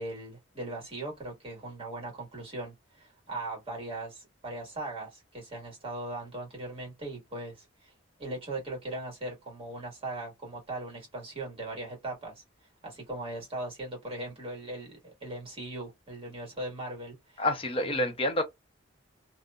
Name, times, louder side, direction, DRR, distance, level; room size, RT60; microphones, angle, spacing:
voice 1, 0.0-7.9 8.2-12.3 12.8-17.5 17.9-18.1, right 2 dB, 30° right, 1.6 m, -39 dB
voice 2, 17.4-18.4, left 1 dB, 30° left, 0.7 m, -28 dB
2.7 x 2.0 x 2.3 m
head